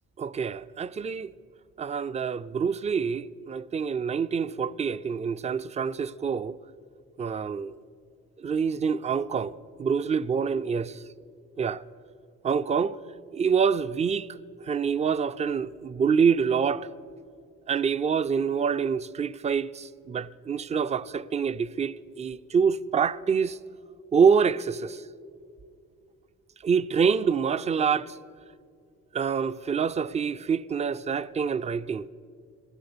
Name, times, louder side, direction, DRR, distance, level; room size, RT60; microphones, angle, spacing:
voice 1, 0.2-1.3 1.8-6.6 7.2-7.8 8.4-11.0 11.6-11.8 12.4-13.0 13.3-14.3 14.6-16.9 17.7-23.6 24.1-25.0 26.6-28.2 29.1-32.1, right 6 dB, 25° right, 0.3 m, -26 dB
16.0 x 11.0 x 6.7 m
cardioid pair, 90°, 30 cm